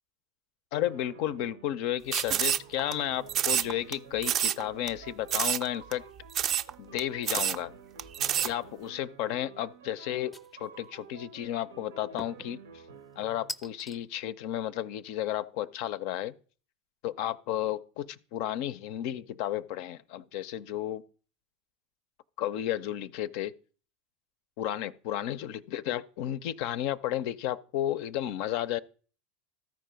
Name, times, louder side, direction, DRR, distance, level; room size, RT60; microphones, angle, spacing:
voice 1, 0.7-6.0 6.8-7.7 8.4-10.3 10.6-12.6 13.2-16.3 17.0-21.0 22.4-23.5 24.6-28.8, left 12 dB, 65° left, 0.4 m, -33 dB
sound 1, 0.7-2.0 2.4-13.6, right 5 dB, 90° right, 0.7 m, -51 dB
sound 2, 2.1-2.9 3.3-3.9 4.2-4.6 4.9-5.0 5.3-5.7 5.9-6.0 6.3-6.7 7.0-7.1 7.2-7.6 8.0-8.5, right 10 dB, 45° right, 0.4 m, -27 dB
sound 3, 7.4-7.7 8.1-8.6 10.3-10.9 12.2-12.5 13.5-14.0, left 1 dB, 10° left, 0.6 m, -42 dB
13.5 x 4.7 x 5.0 m
hypercardioid pair, 90°, 0 cm